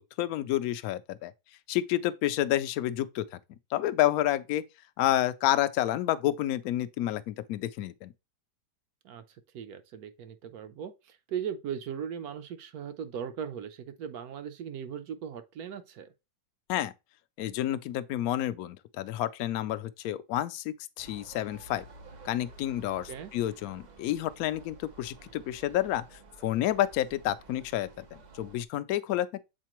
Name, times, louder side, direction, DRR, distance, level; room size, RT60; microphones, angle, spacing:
voice 1, 0.0-1.3 1.7-3.3 3.7-4.6 5.0-8.1 16.7-16.9 17.4-21.8 22.2-26.0 26.4-29.4, left 13 dB, 70° left, 0.9 m, -29 dB
voice 2, 9.0-16.1 23.1-23.3, right 8 dB, 70° right, 1.0 m, -38 dB
sound 1, 21.0-28.6, right 3 dB, 85° right, 0.4 m, -52 dB
7.5 x 4.3 x 3.0 m
omnidirectional pair, 1.9 m